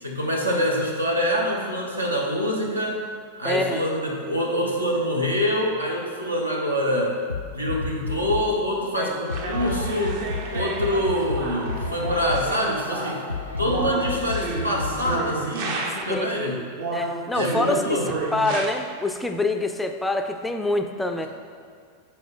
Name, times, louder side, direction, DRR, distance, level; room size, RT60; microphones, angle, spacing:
voice 1, 0.0-3.0 3.4-7.2 7.5-13.3 13.6-16.6 17.3-18.1, equal, 85° right, -1 dB, 1.0 m, -25 dB
voice 2, 3.4-3.8 9.0-9.2 16.1-16.6 16.9-18.0 18.3-21.3, left 2 dB, 5° left, 6 dB, 0.3 m, -26 dB
sound 1, 7.3-8.6 9.3-15.3, left 4 dB, 80° left, 0.3 m, -32 dB
sound 2, 9.3-16.3 16.8-18.7, right 3 dB, 50° right, 0.8 m, -32 dB
7.1 x 4.4 x 3.7 m, 2.1 s
figure-of-eight pair, 90°, 0 cm